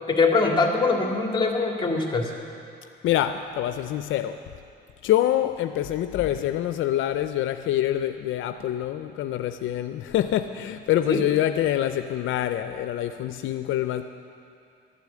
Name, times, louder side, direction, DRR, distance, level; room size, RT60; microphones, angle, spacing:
voice 1, 0.1-2.3 11.1-11.2, left 3 dB, 25° left, 1 dB, 2.2 m, -22 dB
voice 2, 3.0-4.4 5.0-14.0, left 12 dB, 80° left, 9 dB, 0.5 m, -25 dB
12.5 x 8.3 x 8.3 m, 2.6 s
cardioid pair, 90°, 20 cm